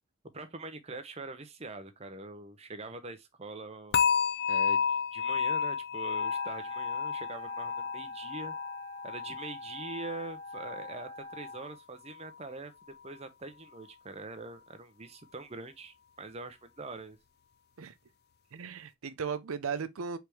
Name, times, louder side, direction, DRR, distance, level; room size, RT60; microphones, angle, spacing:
voice 1, 0.3-4.0 4.5-8.5 9.0-17.2, right 3 dB, 30° right, 0.7 m, -43 dB
sound 1, 3.9-11.0 11.3-11.7 12.2-12.3, left 6 dB, 45° left, 0.3 m, -32 dB
Wind instrument woodwind instrument, 6.1-11.7, left 2 dB, 55° right, 1.0 m, -44 dB
voice 2, 18.5-20.2, right 6 dB, 70° right, 0.6 m, -36 dB
4.6 x 3.5 x 3.2 m
head